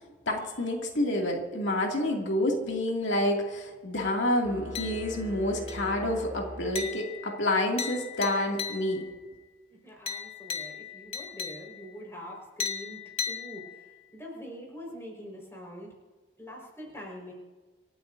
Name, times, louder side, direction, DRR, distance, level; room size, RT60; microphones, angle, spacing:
voice 1, 0.3-9.0, left 1 dB, 90° left, 0 dB, 2.5 m, -28 dB
sound 1, 4.4-7.4, equal, 15° right, 1.0 m, -42 dB
sound 2, 4.7-5.3 5.7-6.1 6.7-9.2 10.1-12.0 12.6-14.0, left 6 dB, 30° left, 1.2 m, -37 dB
voice 2, 9.7-13.0 13.3-13.8 14.1-15.9 16.4-17.3, equal, 15° left, -1 dB, 4.9 m, -44 dB
27.0 x 13.5 x 2.7 m, 1.4 s
head